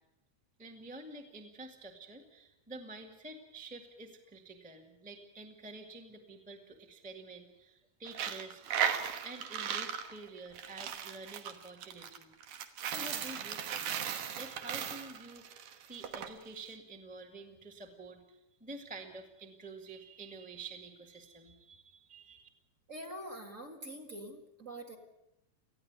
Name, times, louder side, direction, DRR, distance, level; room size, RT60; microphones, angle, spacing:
voice 1, 0.6-8.6 9.2-12.3 12.9-22.5, right 3 dB, 5° right, 3 dB, 1.1 m, -49 dB
Coin (dropping), 8.1-16.3, right 8 dB, 75° right, 2.6 m, -37 dB
voice 2, 22.9-25.0, right 1 dB, 30° right, 3 dB, 2.1 m, -45 dB
19.0 x 14.5 x 9.5 m, 0.89 s
omnidirectional pair, 3.3 m